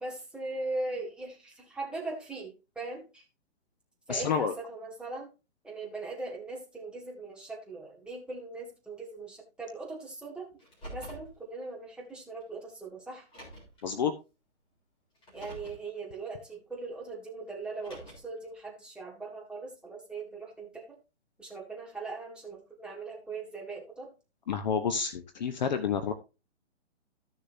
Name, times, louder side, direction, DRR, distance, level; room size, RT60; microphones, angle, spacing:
voice 1, 0.0-3.2 4.1-5.3 5.6-10.5 10.9-13.3 15.3-21.0 21.4-24.1, right 3 dB, 5° right, -2 dB, 1.3 m, -40 dB
voice 2, 4.1-4.5 13.8-14.1 24.5-26.1, left 6 dB, 35° left, 9 dB, 0.8 m, -29 dB
Car, 10.6-11.3 12.4-12.5 13.2-13.8 15.1-15.8 17.6-18.4, equal, 15° left, 3.3 m, -46 dB
14.0 x 6.7 x 2.6 m, 0.28 s
hypercardioid pair, 150°, 36 cm